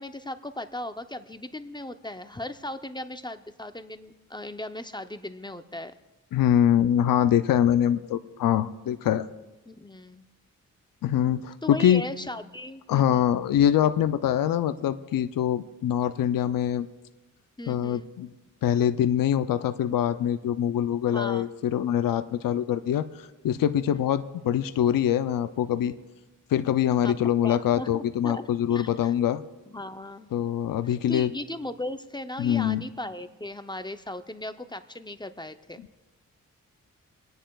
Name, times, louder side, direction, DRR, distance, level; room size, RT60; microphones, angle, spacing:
voice 1, 0.0-5.9 9.7-10.2 11.6-13.3 17.6-18.1 21.1-21.5 23.9-24.1 27.0-27.1 27.4-28.4 28.7-29.1 29.7-30.3 30.8-35.8, left 1 dB, 15° left, 8 dB, 0.6 m, -37 dB
voice 2, 6.3-9.3 11.0-12.0 12.9-16.9 17.7-18.3 18.6-25.9 26.5-29.4 30.3-31.3 32.4-32.8, left 10 dB, 75° left, 11 dB, 0.5 m, -24 dB
28.0 x 10.0 x 2.3 m, 1.1 s
cardioid pair, 75°, 33 cm